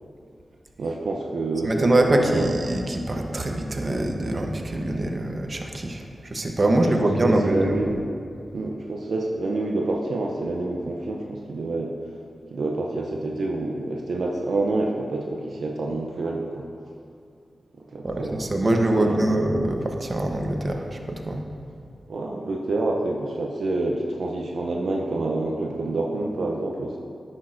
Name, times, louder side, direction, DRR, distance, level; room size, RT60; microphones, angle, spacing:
voice 1, 0.8-2.5 6.7-8.1 8.5-11.9 12.5-16.7 17.8-18.5 19.0-19.2 22.1-27.0, right 2 dB, 75° right, 0 dB, 0.5 m, -27 dB
voice 2, 1.6-7.7 18.0-21.4, right 1 dB, 45° right, 3 dB, 0.8 m, -24 dB
10.0 x 6.1 x 2.5 m, 2.4 s
cardioid pair, 45°, 0 cm